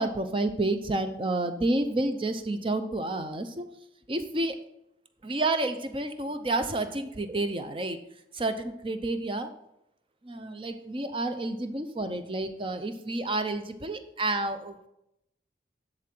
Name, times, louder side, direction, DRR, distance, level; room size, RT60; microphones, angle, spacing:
voice 1, 0.0-3.6 4.1-4.6 5.2-8.0 8.3-9.5 10.2-14.7, right 2 dB, 30° right, 9 dB, 0.6 m, -30 dB
11.0 x 3.8 x 6.0 m, 0.82 s
head